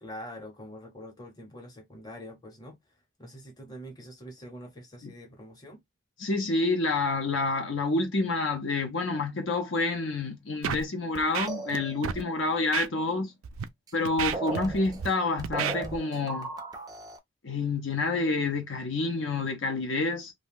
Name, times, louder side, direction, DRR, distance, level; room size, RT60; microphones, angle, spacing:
voice 1, 0.0-2.8 3.2-5.8, equal, 20° left, 0.9 m, -44 dB
voice 2, 6.2-13.3 13.9-16.5 17.4-20.3, left 3 dB, 65° left, 0.7 m, -28 dB
Scratching (performance technique), 10.6-10.8 11.2-11.8 12.0-12.2 12.7-12.9 13.4-13.6 14.1-15.1 15.4-15.8, right 8 dB, 85° right, 0.4 m, -31 dB
sound 1, 11.5-12.3 13.9-14.0 14.2-17.2, right 3 dB, 20° right, 0.4 m, -37 dB
2.6 x 2.2 x 3.4 m
head